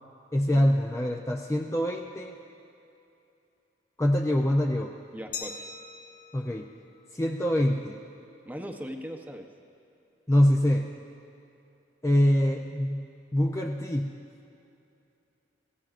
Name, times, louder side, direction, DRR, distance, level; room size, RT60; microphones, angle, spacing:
voice 1, 0.3-2.3 4.0-4.9 6.3-6.7 7.1-8.0 10.3-10.9 12.0-13.0 13.3-14.2, left 1 dB, 15° left, 1 dB, 0.5 m, -24 dB
voice 2, 5.1-5.6 8.4-9.5, equal, 10° right, 3 dB, 0.8 m, -39 dB
Glass, 5.3-8.0, left 5 dB, 50° left, 1.2 m, -43 dB
25.5 x 16.0 x 2.5 m, 2.7 s
head